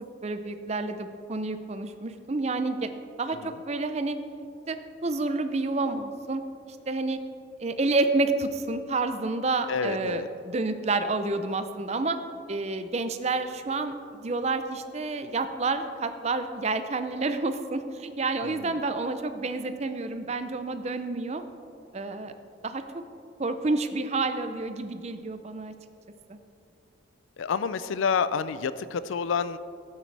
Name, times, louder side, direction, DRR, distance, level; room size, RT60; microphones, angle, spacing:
voice 1, 0.2-2.9 3.2-4.2 4.7-4.8 5.0-6.4 6.7-7.2 7.6-12.2 12.5-21.4 21.9-22.3 22.6-23.0 23.4-25.7 26.3-26.4, right 3 dB, 35° right, 9 dB, 0.5 m, -29 dB
voice 2, 9.7-10.3 18.4-18.7 27.4-29.6, left 6 dB, 80° left, 15 dB, 0.4 m, -28 dB
12.5 x 8.9 x 3.4 m, 2.5 s
head